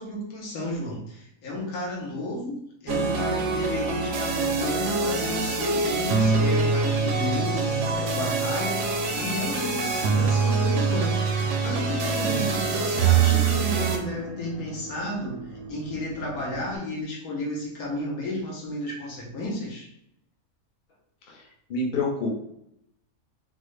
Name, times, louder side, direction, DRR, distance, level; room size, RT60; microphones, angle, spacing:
voice 1, 0.0-2.6 2.8-19.9, left 1 dB, 75° left, -2 dB, 1.4 m, -32 dB
sound 1, 2.9-14.0, right 5 dB, 70° right, 0.8 m, -24 dB
sound 2, 3.1-16.8, right 1 dB, 85° right, 1.1 m, -42 dB
voice 2, 21.7-22.3, left 2 dB, 50° left, -1 dB, 0.6 m, -27 dB
3.9 x 2.2 x 3.1 m, 0.76 s
omnidirectional pair, 1.6 m